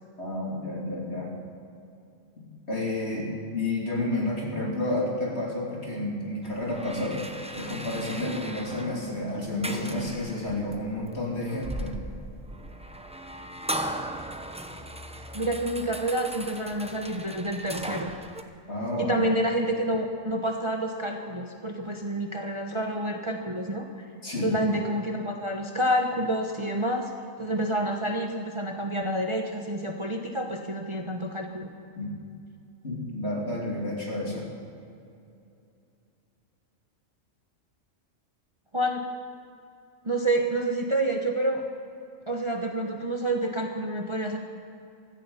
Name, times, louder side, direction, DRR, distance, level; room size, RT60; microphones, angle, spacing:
voice 1, 0.2-1.4 2.7-7.2 7.5-11.9 18.7-19.2 24.2-24.5 31.9-32.1 32.8-34.5, left 1 dB, 55° left, -3 dB, 3.4 m, -30 dB
sound 1, 6.4-18.4, right 1 dB, 5° right, 0.6 m, -38 dB
voice 2, 15.3-18.1 19.0-23.9 24.4-27.1 27.4-31.7 38.7-39.1 40.0-41.6 42.3-44.4, right 1 dB, 25° right, 3 dB, 0.9 m, -28 dB
16.0 x 14.0 x 5.7 m, 2.6 s
omnidirectional pair, 1.4 m